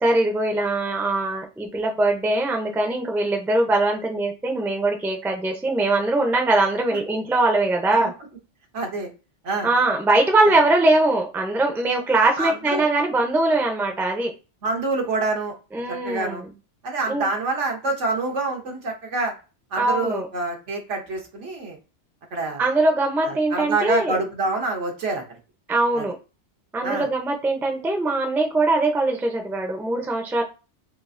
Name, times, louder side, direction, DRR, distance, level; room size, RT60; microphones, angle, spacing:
voice 1, 0.0-8.1 9.6-14.3 15.7-16.5 17.1-17.3 19.8-20.3 22.6-24.2 25.7-26.1 26.7-30.4, right 2 dB, 5° right, 3 dB, 0.4 m, -21 dB
voice 2, 8.7-9.1 9.4-9.7 10.5-10.6 12.4-12.9 14.6-15.5 15.9-16.4 16.8-19.3 19.7-21.8 22.3-22.6 23.2-25.2 25.9-26.0 26.8-27.1, right 3 dB, 85° right, 1 dB, 1.4 m, -26 dB
4.5 x 2.4 x 2.6 m, 0.32 s
omnidirectional pair, 1.2 m